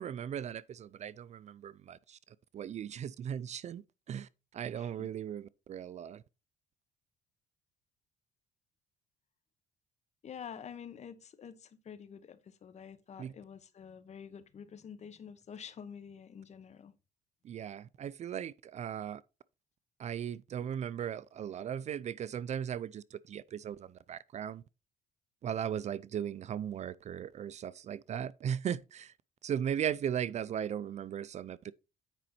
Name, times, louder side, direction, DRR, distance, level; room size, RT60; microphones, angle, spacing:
voice 1, 0.0-2.2 2.5-6.2 13.2-13.3 17.4-19.2 20.0-24.6 25.4-29.1 29.4-31.7, right 9 dB, 45° right, 0.4 m, -37 dB
voice 2, 4.8-5.1 10.2-16.9 20.6-20.7, left 7 dB, 40° left, 1.1 m, -48 dB
9.1 x 5.3 x 4.3 m
cardioid pair, 110°, 17 cm